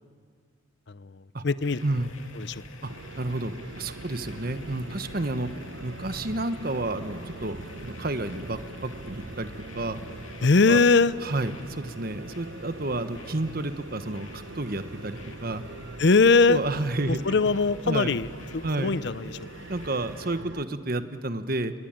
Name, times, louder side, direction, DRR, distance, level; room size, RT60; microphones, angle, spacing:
voice 1, 0.9-1.8 2.3-2.6 10.4-11.2 16.0-16.6 17.1-19.7, left 4 dB, 55° left, 16 dB, 0.6 m, -22 dB
sound 1, 1.6-20.4, left 2 dB, 90° left, 2.6 m, -48 dB
sound 2, 2.9-20.7, right 2 dB, 65° right, 1.0 m, -43 dB
voice 2, 3.2-5.5 5.8-10.0 10.7-10.8 11.2-15.6 16.5-17.2 17.9-18.1 18.6-18.9 19.7-21.7, right 2 dB, 45° right, 10 dB, 1.3 m, -30 dB
29.5 x 22.5 x 9.0 m, 2.1 s
head